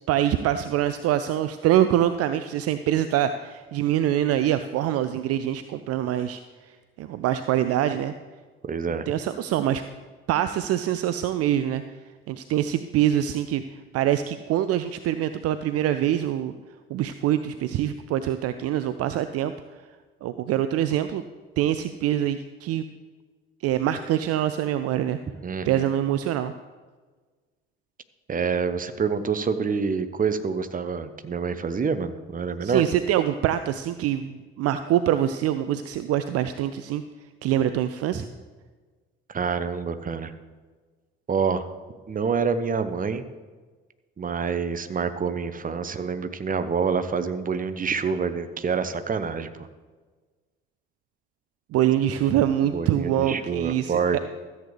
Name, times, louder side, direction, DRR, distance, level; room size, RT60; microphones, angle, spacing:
voice 1, 0.1-6.4 7.0-8.1 9.1-9.8 10.3-11.8 12.3-13.6 13.9-16.5 16.9-19.5 20.2-21.2 21.6-22.8 23.6-25.2 25.6-26.5 32.6-37.0 37.4-38.2 51.7-54.2, right 11 dB, 50° right, 11 dB, 0.5 m, -24 dB
voice 2, 8.7-9.1 25.4-25.8 28.3-32.8 38.1-38.2 39.3-40.3 41.3-41.7 42.1-43.2 44.2-49.5 52.7-54.2, right 5 dB, 25° right, 11 dB, 0.9 m, -27 dB
13.5 x 8.1 x 3.4 m, 1.4 s
hypercardioid pair, 50°, 30 cm